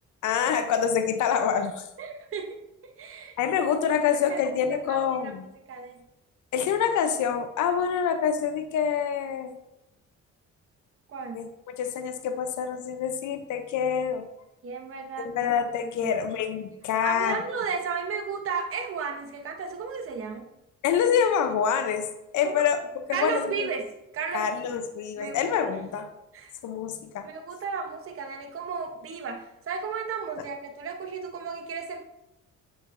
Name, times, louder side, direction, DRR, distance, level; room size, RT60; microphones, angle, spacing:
voice 1, 0.2-1.9 3.4-5.5 6.5-9.5 11.3-11.5 11.8-14.3 15.2-17.4 20.8-22.1 22.3-22.8 23.1-23.7 24.3-26.1 26.6-27.3, left 7 dB, 75° left, 8 dB, 0.7 m, -26 dB
voice 2, 2.0-2.6 3.0-3.3 4.1-5.3 5.7-6.1 11.1-11.5 14.6-15.3 16.0-16.1 17.0-20.5 22.4-22.7 23.1-23.9 24.1-24.8 25.2-25.6 26.3-26.5 27.2-32.0, right 5 dB, 45° right, 4 dB, 0.9 m, -34 dB
8.0 x 5.0 x 2.6 m, 0.91 s
cardioid pair, 90°, 30 cm